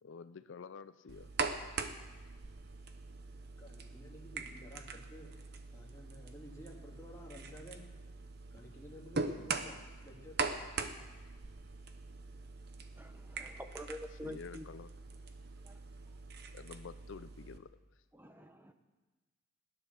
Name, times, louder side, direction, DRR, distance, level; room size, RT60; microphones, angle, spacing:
voice 1, 0.0-1.3 14.2-14.9 16.5-17.7, left 5 dB, 60° left, 13 dB, 0.4 m, -49 dB
sound 1, 1.1-17.6, right 4 dB, 50° right, 0.8 m, -42 dB
voice 2, 3.6-5.3 5.7-7.8 8.5-9.8 10.0-10.9, left 1 dB, 15° left, -2 dB, 2.3 m, -53 dB
voice 3, 13.0-14.6 15.6-15.8 18.1-18.7, left 1 dB, 10° right, 8 dB, 0.8 m, -47 dB
16.0 x 10.5 x 6.7 m, 1.2 s
head